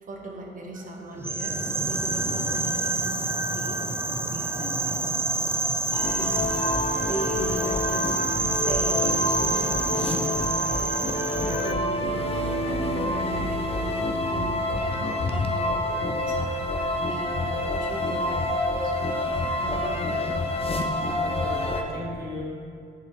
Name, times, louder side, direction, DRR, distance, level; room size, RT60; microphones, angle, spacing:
voice 1, 0.0-5.1 5.4-5.6 6.1-6.6 7.1-8.2 8.5-19.2 19.6-20.3, right 2 dB, 45° right, 0 dB, 0.8 m, -38 dB
sound 1, 1.2-11.7, right 2 dB, 15° right, 0.3 m, -27 dB
sound 2, 5.9-21.8, left 1 dB, 30° left, 0.6 m, -27 dB
voice 2, 21.2-22.4, left 2 dB, 45° left, -3 dB, 1.4 m, -37 dB
6.9 x 4.7 x 3.0 m, 2.3 s
cardioid pair, 90°, 20 cm